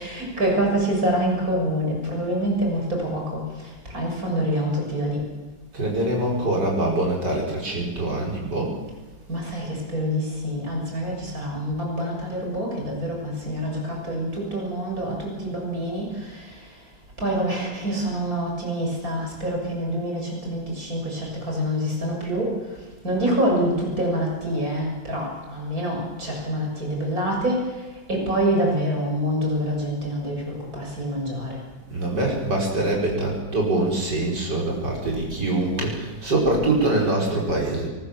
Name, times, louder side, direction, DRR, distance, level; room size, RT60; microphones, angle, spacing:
voice 1, 0.0-5.2 9.3-16.5 17.2-22.5 23.0-27.7 28.1-31.6, right 1 dB, 50° right, 0 dB, 7.3 m, -26 dB
voice 2, 5.7-8.7 31.9-37.9, right 2 dB, 65° right, -1 dB, 6.0 m, -24 dB
23.5 x 20.0 x 7.3 m, 1.2 s
omnidirectional pair, 2.0 m